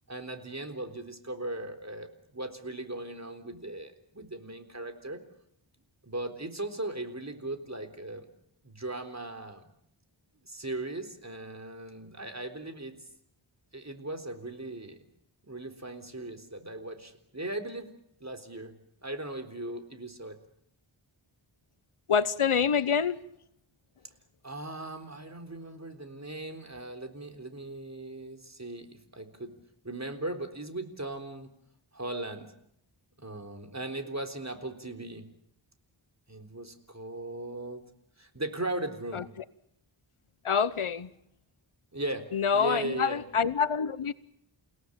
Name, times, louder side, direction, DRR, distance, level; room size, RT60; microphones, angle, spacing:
voice 1, 0.1-5.2 6.0-8.3 8.6-9.6 10.4-13.1 13.7-15.0 15.4-17.9 18.2-18.8 19.0-20.4 24.4-29.5 29.8-31.5 31.9-32.5 33.2-35.3 36.3-37.8 38.2-39.3 41.9-42.3 42.5-43.2, right 2 dB, 35° right, 3.8 m, -38 dB
voice 2, 22.1-23.2 39.1-39.2 40.4-41.1 42.3-44.1, left 6 dB, 80° left, 1.0 m, -26 dB
29.5 x 17.5 x 8.8 m
wide cardioid pair, 50°, 49 cm